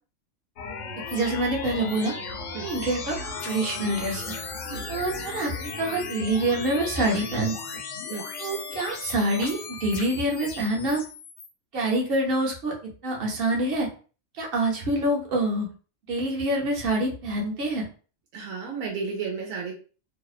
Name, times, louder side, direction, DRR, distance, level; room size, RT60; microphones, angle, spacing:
sound 1, 0.6-11.5, left 4 dB, 70° left, 0.9 m, -36 dB
voice 1, 1.1-2.1 2.6-4.3 4.9-7.5 8.4-11.0 11.7-12.7 13.0-13.9 14.4-15.7 16.1-17.9, right 1 dB, 50° right, -1 dB, 0.9 m, -26 dB
voice 2, 18.3-19.8, right 5 dB, 90° right, -1 dB, 1.0 m, -33 dB
2.7 x 2.0 x 2.4 m, 0.38 s
omnidirectional pair, 1.4 m